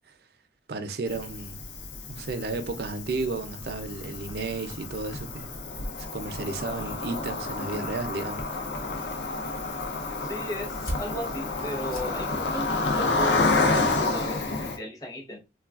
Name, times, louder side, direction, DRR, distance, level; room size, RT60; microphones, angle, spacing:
voice 1, 0.7-1.7 2.1-5.5 6.0-8.4, right 3 dB, 60° right, 0.4 m, -33 dB
Cricket, 1.1-14.8, left 3 dB, 80° left, 0.5 m, -30 dB
voice 2, 10.2-15.4, left 1 dB, 20° left, 0.7 m, -36 dB
sound 1, 10.6-14.6, equal, 50° left, 0.9 m, -42 dB
3.2 x 2.3 x 2.3 m
head